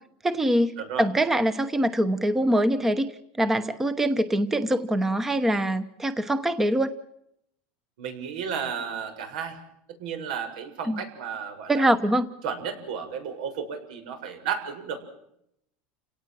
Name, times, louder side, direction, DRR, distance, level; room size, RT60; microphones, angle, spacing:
voice 1, 0.2-3.1 3.4-6.9 10.9-11.0 11.7-12.3, right 1 dB, 5° right, 13 dB, 1.0 m, -24 dB
voice 2, 0.8-1.1 8.0-9.6 10.0-11.9 12.4-15.0, right 7 dB, 85° right, 6 dB, 7.2 m, -33 dB
30.0 x 18.0 x 7.7 m, 0.76 s
supercardioid pair, 175°, 4 cm